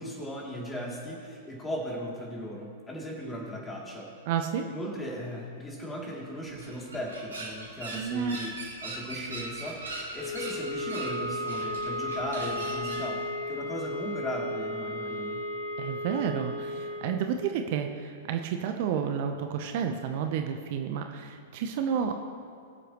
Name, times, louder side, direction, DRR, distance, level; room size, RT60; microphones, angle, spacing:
voice 1, 0.0-4.1 4.7-8.5 8.8-15.4, equal, 15° left, -3 dB, 2.9 m, -37 dB
voice 2, 4.3-4.7 7.9-8.4 15.8-22.2, right 7 dB, 45° right, 6 dB, 0.8 m, -31 dB
sound 1, 6.4-13.1, right 2 dB, 70° right, 3.1 m, -40 dB
sound 2, 10.2-17.2, left 1 dB, 75° left, 1.5 m, -34 dB
21.5 x 8.0 x 3.1 m, 2.3 s
figure-of-eight pair, 105°, 0 cm